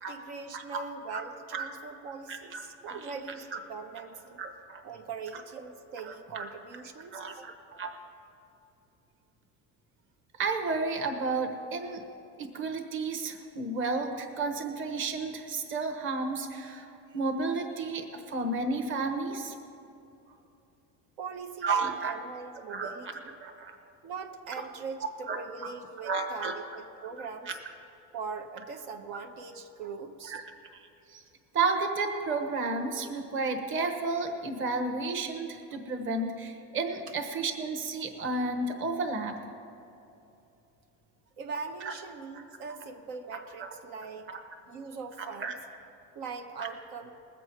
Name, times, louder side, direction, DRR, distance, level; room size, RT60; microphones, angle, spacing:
voice 1, 0.1-4.4 4.8-7.5 21.2-23.3 24.0-27.5 28.1-30.4 41.4-44.3 44.7-45.6 46.1-47.1, right 5 dB, 80° right, 4 dB, 1.1 m, -41 dB
voice 2, 2.3-3.0 4.4-4.8 6.0-6.5 7.1-7.9 10.4-12.0 12.4-16.9 17.1-19.5 21.6-22.1 22.7-23.1 23.4-23.7 25.3-25.4 26.0-26.5 27.5-27.6 30.3-30.4 31.1-31.2 31.5-39.3 41.8-41.9 42.3-42.4 43.6-43.7 44.3-44.4 45.2-45.5, right 3 dB, 35° right, 5 dB, 1.3 m, -32 dB
20.5 x 7.7 x 4.6 m, 2.8 s
cardioid pair, 145°, 36 cm